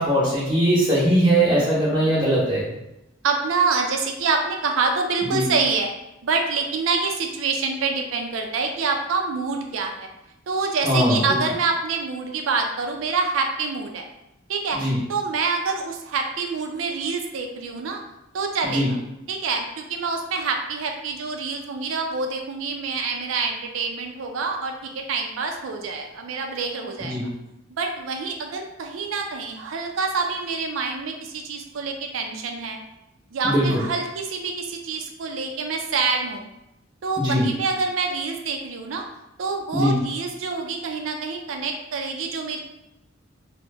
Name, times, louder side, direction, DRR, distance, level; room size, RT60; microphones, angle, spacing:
voice 1, 0.0-2.6 5.3-5.5 10.8-11.2 14.7-15.0 18.7-18.9 27.1-27.3 33.4-33.7 37.2-37.4 39.7-40.0, right 1 dB, 25° right, -11 dB, 0.7 m, -20 dB
voice 2, 3.2-5.9 6.2-10.1 10.5-14.0 14.5-14.8 15.1-18.0 18.3-19.0 19.3-27.2 27.8-32.8 33.3-36.5 37.0-39.0 39.4-42.6, right 4 dB, 85° right, 3 dB, 0.4 m, -26 dB
2.8 x 2.1 x 3.4 m, 0.90 s
head